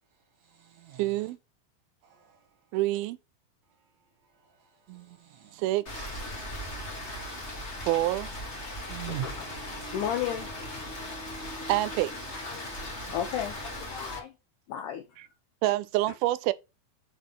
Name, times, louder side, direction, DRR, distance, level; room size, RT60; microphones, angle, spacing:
voice 1, 0.4-1.3 2.0-2.6 3.7-5.7 6.5-6.9 8.7-9.9 13.0-13.2, right 12 dB, 65° right, 2.0 m, -45 dB
voice 2, 1.0-1.4 2.7-3.2 5.5-6.2 7.9-8.3 11.7-12.1 15.6-16.5, right 17 dB, 85° right, 2.4 m, -27 dB
Rain, 5.8-14.2, left 1 dB, 45° left, 0.8 m, -38 dB
voice 3, 9.1-9.5 9.9-10.5 12.5-12.8 13.1-14.3 14.7-15.2 15.7-15.8, left 10 dB, 75° left, 2.0 m, -34 dB
6.2 x 3.7 x 5.7 m
omnidirectional pair, 4.3 m